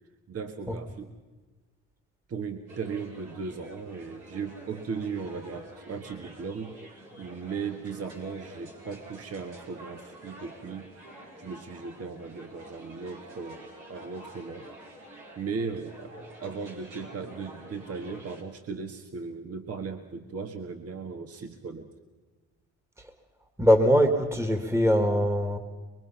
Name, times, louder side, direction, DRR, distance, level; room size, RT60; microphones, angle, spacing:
voice 1, 0.3-1.1 2.3-6.8 7.2-10.9 11.4-14.7 15.4-21.9, right 5 dB, 50° right, 6 dB, 1.6 m, -37 dB
sound 1, 2.7-18.4, right 1 dB, 85° right, 5.1 m, -48 dB
voice 2, 23.6-25.6, equal, 10° right, 7 dB, 1.8 m, -22 dB
23.5 x 23.0 x 5.8 m, 1.3 s
cardioid pair, 90°, 30 cm